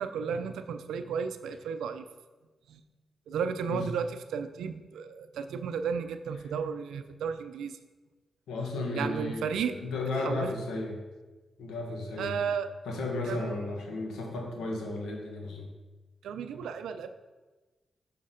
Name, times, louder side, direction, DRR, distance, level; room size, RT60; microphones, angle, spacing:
voice 1, 0.0-2.0 2.7-2.8 3.3-7.8 8.9-9.8 10.2-10.5 12.2-12.7 13.3-13.7 16.2-17.1, right 6 dB, 90° right, 9 dB, 0.4 m, -33 dB
voice 2, 8.5-11.0 11.6-12.4 12.8-15.7, left 2 dB, 90° left, 0 dB, 1.4 m, -34 dB
6.5 x 5.9 x 3.8 m, 1.2 s
supercardioid pair, 50°, 0 cm